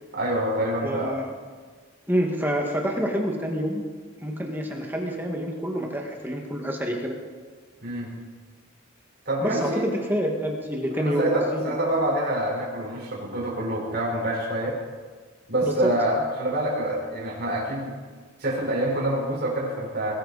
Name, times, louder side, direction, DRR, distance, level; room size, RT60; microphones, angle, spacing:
voice 1, 0.1-1.1 7.8-8.1 9.2-9.8 11.0-14.8 15.5-17.9 18.4-20.1, right 1 dB, 50° right, -3 dB, 4.7 m, -26 dB
voice 2, 0.8-1.3 2.1-3.8 4.2-7.1 9.4-11.7 15.6-15.7, equal, 10° right, 1 dB, 1.8 m, -27 dB
21.0 x 13.5 x 4.2 m, 1.5 s
head